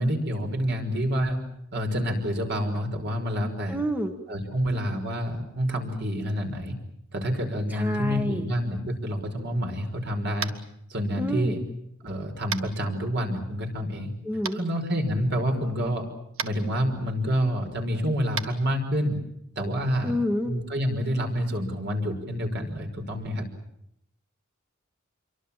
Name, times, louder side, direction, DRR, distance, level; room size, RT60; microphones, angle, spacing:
voice 1, 0.0-1.4 1.7-3.8 4.3-6.7 7.1-10.5 10.9-11.6 12.0-14.1 14.5-16.0 16.4-19.2 19.6-20.1 20.4-23.5, equal, 55° right, 4 dB, 5.7 m, -28 dB
voice 2, 3.7-4.2 7.7-8.4 11.2-11.6 14.2-14.6 20.0-20.5, equal, 10° right, 6 dB, 1.5 m, -28 dB
Tap, 10.4-10.7 12.5-12.7 14.4-14.5 16.3-16.5 18.3-18.5, right 7 dB, 75° right, 1.7 m, -31 dB
28.0 x 24.0 x 7.5 m, 0.75 s
head